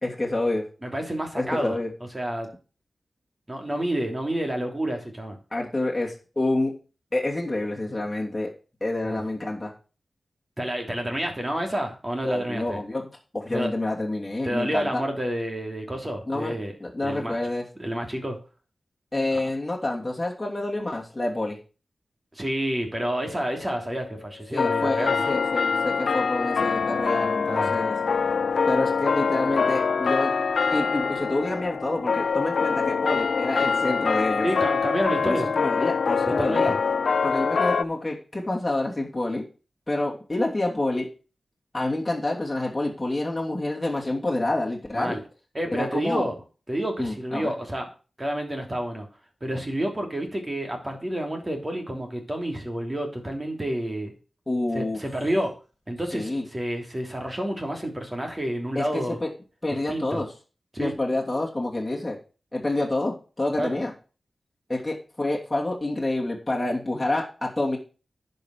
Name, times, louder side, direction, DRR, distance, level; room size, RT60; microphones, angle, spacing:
voice 1, 0.0-0.7 1.3-1.9 5.5-6.7 7.1-8.5 8.8-9.7 12.2-13.0 13.3-15.0 16.3-16.5 16.8-17.6 19.1-21.6 24.5-27.9 28.7-30.3 30.7-34.5 35.2-36.8 37.2-39.4 39.9-41.1 41.7-45.2 45.7-46.3 47.0-47.5 54.5-55.0 56.1-56.4 58.7-59.3 59.6-60.3 60.8-62.2 62.5-63.9 64.7-67.8, left 2 dB, 20° left, -3 dB, 2.8 m, -28 dB
voice 2, 0.8-2.5 3.5-5.4 9.0-9.2 10.6-12.8 13.5-13.7 14.4-16.7 17.0-17.4 17.8-18.4 19.3-19.4 22.3-25.3 27.5-27.8 34.4-35.5 36.3-36.8 44.9-45.2 45.5-46.3 46.7-47.8 48.2-49.1 49.4-54.1 54.7-55.5 55.9-59.2 59.9-60.2 60.7-61.0 63.6-63.8, right 1 dB, 20° right, 3 dB, 3.2 m, -29 dB
sound 1, 23.0-24.0 24.6-37.8, left 5 dB, 75° left, 0.4 m, -24 dB
10.5 x 5.5 x 6.5 m, 0.35 s
wide cardioid pair, 80°, 0 cm